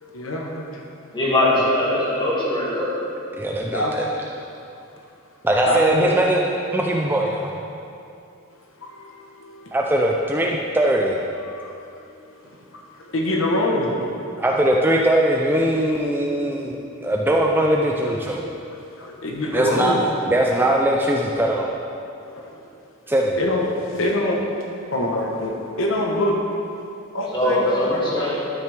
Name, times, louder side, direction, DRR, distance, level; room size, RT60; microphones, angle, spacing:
voice 1, 0.0-0.8 3.7-4.1 5.6-6.1 8.8-9.7 11.4-11.8 12.2-12.4 13.0-14.0 19.0-20.0 22.2-22.6 23.4-24.4 24.9-26.5 27.1-28.4, left 1 dB, 70° left, -1 dB, 1.0 m, -25 dB
voice 2, 1.1-2.9 27.3-28.5, left 1 dB, 20° left, -7 dB, 2.1 m, -21 dB
voice 3, 3.4-4.0 5.4-6.4 6.7-7.5 9.7-11.2 14.4-18.5 19.5-20.0 20.3-21.7 23.1-23.4, right 1 dB, 10° right, -1 dB, 0.4 m, -20 dB
12.0 x 6.2 x 3.4 m, 2.6 s
head